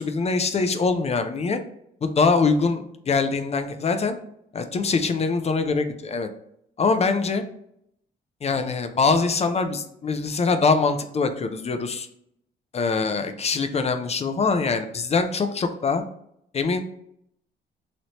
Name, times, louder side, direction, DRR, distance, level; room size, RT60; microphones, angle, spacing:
voice 1, 0.0-1.6 2.0-4.2 4.5-6.3 6.8-7.4 8.4-12.1 12.7-16.0 16.5-16.8, left 4 dB, 35° left, 8 dB, 0.4 m, -23 dB
3.1 x 2.7 x 2.9 m, 0.74 s
cardioid pair, 90°, 20 cm